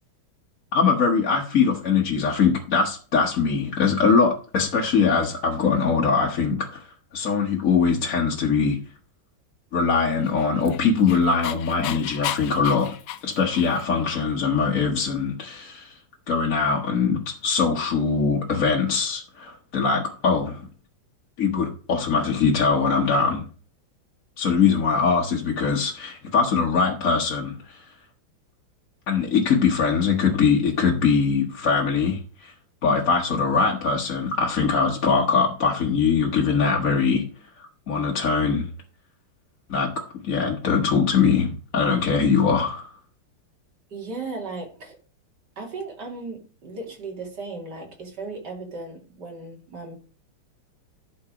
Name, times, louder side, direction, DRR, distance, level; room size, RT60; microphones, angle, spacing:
voice 1, 0.7-6.9 7.1-8.8 9.7-12.9 13.2-16.0 16.3-20.6 21.4-23.4 24.4-27.8 29.1-32.5 32.8-37.3 37.6-38.7 39.7-39.9 40.2-42.9, left 5 dB, 50° left, 1.3 m, -22 dB
Dog, 10.2-14.0, left 12 dB, 80° left, 1.5 m, -34 dB
voice 2, 43.9-45.0 45.6-49.9, right 3 dB, 55° right, 2.9 m, -36 dB
11.5 x 4.8 x 4.9 m
omnidirectional pair, 2.2 m